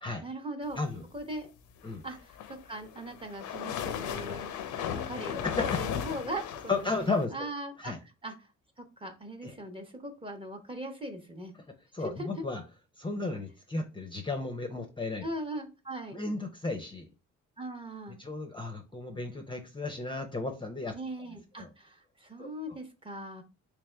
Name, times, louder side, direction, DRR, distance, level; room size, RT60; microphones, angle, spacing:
voice 1, 0.2-0.8 1.1-1.5 2.0-2.4 2.6-6.9 7.3-7.9 8.2-8.5 8.8-11.5 12.0-12.4 15.2-16.2 17.6-18.2 20.9-23.4, right 1 dB, 15° right, 4 dB, 0.8 m, -40 dB
sound 1, 2.2-7.3, left 9 dB, 80° left, 0.6 m, -35 dB
voice 2, 5.4-5.8 6.7-7.5 7.8-8.0 9.4-9.5 11.9-12.6 13.0-15.2 16.1-17.1 18.2-20.9 21.6-21.7 22.4-22.5, left 3 dB, 15° left, 4 dB, 0.6 m, -34 dB
3.3 x 3.2 x 3.3 m, 0.31 s
cardioid pair, 90°, 30 cm